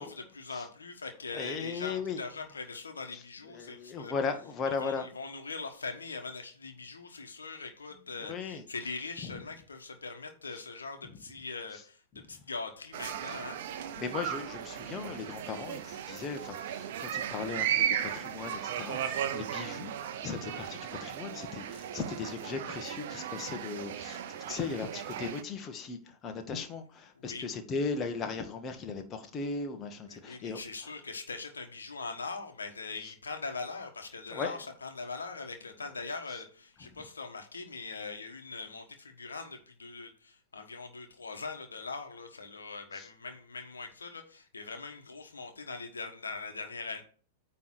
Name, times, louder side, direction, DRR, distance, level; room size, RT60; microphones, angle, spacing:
voice 1, 0.0-4.1 4.7-12.0 12.3-13.6 27.1-27.5 30.1-47.0, left 4 dB, 80° left, 5 dB, 1.2 m, -41 dB
voice 2, 1.3-2.2 3.1-5.1 8.2-8.6 9.2-9.4 14.0-24.2 24.5-30.6 34.3-34.6 36.3-36.4 42.9-43.1, left 5 dB, 25° left, 5 dB, 1.3 m, -37 dB
sound 1, 12.9-25.4, right 9 dB, 55° right, 0.8 m, -36 dB
9.3 x 3.4 x 6.1 m, 0.42 s
figure-of-eight pair, 100°, 0 cm